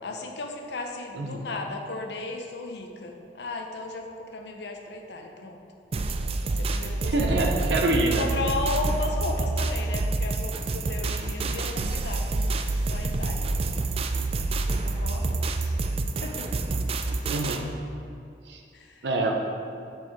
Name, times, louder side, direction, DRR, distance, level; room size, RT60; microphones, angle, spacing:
voice 1, 0.0-5.6 6.5-7.1 8.2-13.9 14.6-15.8 16.2-16.5 18.7-19.0, left 3 dB, 70° left, 3 dB, 0.7 m, -35 dB
voice 2, 1.1-1.5 7.0-8.3 17.3-17.6 18.5-18.6 19.0-19.4, right 2 dB, 75° right, 1 dB, 0.7 m, -26 dB
sound 1, 5.9-17.6, right 2 dB, 35° right, 0.3 m, -27 dB
6.3 x 4.6 x 4.6 m, 2.5 s
head